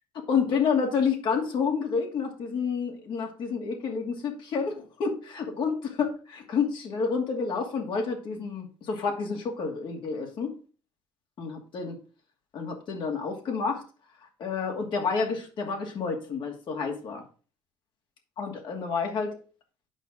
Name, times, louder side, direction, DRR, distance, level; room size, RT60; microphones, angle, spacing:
voice 1, 0.1-10.5 11.4-12.0 12.5-13.8 14.4-17.2 18.4-19.4, left 5 dB, 60° left, 3 dB, 2.6 m, -29 dB
8.2 x 5.8 x 4.9 m, 0.37 s
cardioid pair, 90°, 9 cm